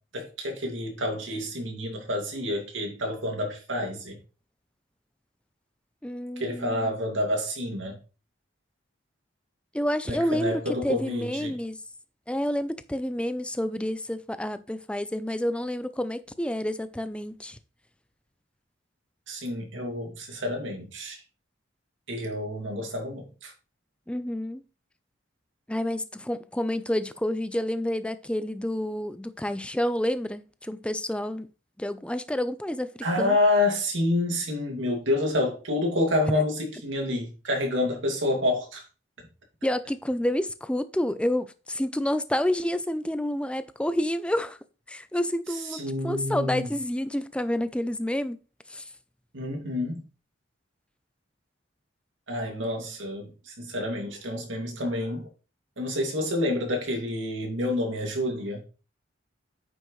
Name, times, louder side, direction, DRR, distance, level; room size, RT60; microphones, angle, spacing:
voice 1, 0.1-4.2 6.4-8.0 10.1-11.5 19.3-21.2 22.1-23.5 33.0-38.8 45.7-46.7 49.3-50.0 52.3-55.3 55.8-58.6, left 1 dB, 90° right, 2.4 m, -28 dB
voice 2, 6.0-6.9 9.7-11.8 12.3-17.6 24.1-24.6 25.7-31.5 31.8-32.9 33.2-33.4 39.6-44.6 44.9-48.4 48.7-48.8, left 1 dB, 5° left, 0.5 m, -29 dB
9.0 x 6.3 x 3.2 m
head